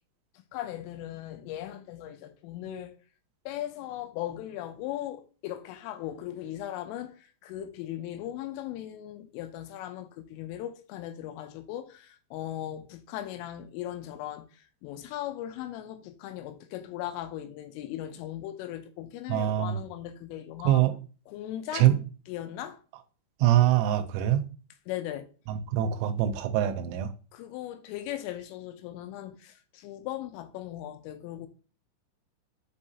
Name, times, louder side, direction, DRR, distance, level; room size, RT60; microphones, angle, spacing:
voice 1, 0.5-3.0 3.5-20.8 21.3-21.9 22.3-22.8 24.9-25.3 27.3-31.5, left 12 dB, 85° left, 3.2 m, -38 dB
voice 2, 19.3-19.8 20.6-20.9 21.7-22.0 23.4-24.4 25.5-27.1, right 12 dB, 85° right, 3.0 m, -24 dB
7.2 x 5.2 x 2.8 m
omnidirectional pair, 5.8 m